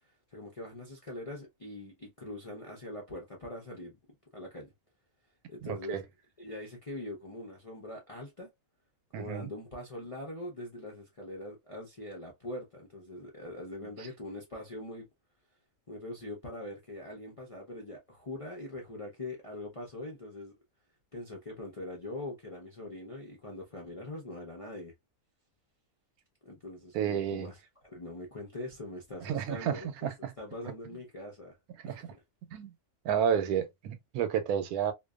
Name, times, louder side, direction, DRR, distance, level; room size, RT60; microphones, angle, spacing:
voice 1, 0.3-4.0 4.3-4.7 5.5-6.0 6.4-8.5 9.1-15.1 15.9-20.5 21.1-24.9 26.4-31.6 31.8-32.2, left 1 dB, 40° left, 0.5 m, -42 dB
voice 2, 5.6-6.0 9.1-9.5 26.9-27.5 29.2-30.3 31.8-32.0 32.5-32.7 33.0-34.9, right 8 dB, 90° right, 1.1 m, -31 dB
2.5 x 2.2 x 2.3 m
omnidirectional pair, 1.6 m